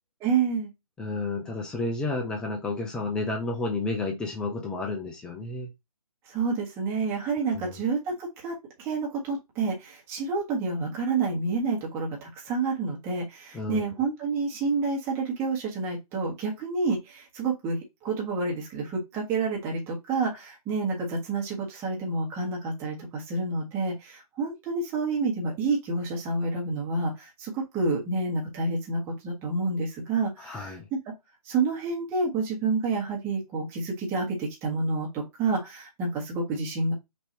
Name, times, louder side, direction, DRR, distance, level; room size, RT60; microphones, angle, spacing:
voice 1, 0.2-0.7 6.3-31.0 31.4-36.9, right 3 dB, 15° right, 1.4 m, -29 dB
voice 2, 1.0-5.7 7.5-7.8 13.5-13.8 30.4-30.8, left 3 dB, 5° left, 0.6 m, -31 dB
6.0 x 3.0 x 2.9 m
figure-of-eight pair, 145°, 19 cm